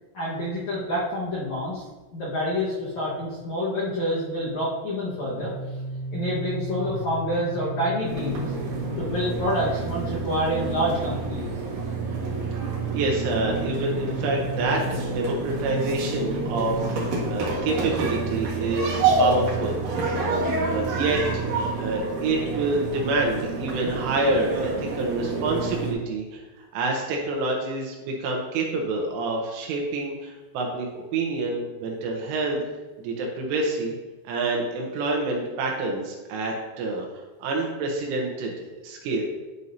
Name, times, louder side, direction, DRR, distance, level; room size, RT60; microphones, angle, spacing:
voice 1, 0.1-1.8 2.1-5.5 6.1-8.4 9.0-11.5, equal, 80° left, -8 dB, 1.6 m, -27 dB
sound 1, 5.4-21.4, equal, 50° left, 3.0 m, -35 dB
sound 2, 8.0-25.9, right 3 dB, 60° right, 2.6 m, -29 dB
voice 2, 12.9-19.8 20.6-21.4 21.8-26.4 26.7-32.6 33.0-33.9 34.2-37.1 37.4-39.2, right 2 dB, 80° right, 0 dB, 3.3 m, -27 dB
11.0 x 6.3 x 2.7 m, 1.2 s
omnidirectional pair, 5.7 m